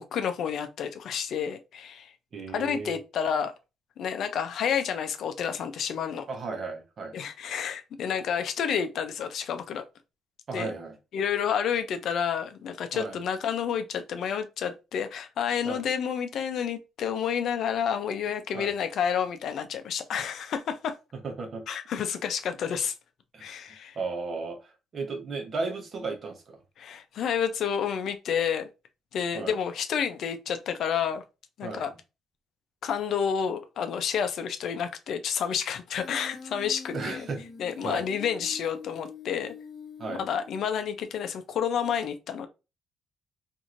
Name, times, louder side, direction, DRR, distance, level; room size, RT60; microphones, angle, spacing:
voice 1, 0.0-2.1 2.5-3.5 4.0-6.3 7.1-9.8 10.5-10.7 11.1-21.0 21.7-22.9 23.4-24.0 26.8-28.7 29.1-31.2 31.6-31.9 32.8-37.3 37.6-39.5 40.1-42.5, left 7 dB, 65° left, 0.4 m, -30 dB
voice 2, 2.3-3.0 6.3-7.2 10.5-11.0 12.9-13.2 15.6-15.8 18.5-18.7 21.2-21.7 23.3-23.5 23.9-26.6 29.3-29.6 31.6-31.8 36.9-37.4 37.8-38.1 40.0-40.2, right 4 dB, 45° right, 0.9 m, -34 dB
Human voice, 35.9-40.9, left 5 dB, 40° left, 0.8 m, -44 dB
3.0 x 2.6 x 2.5 m
cardioid pair, 110°, 0 cm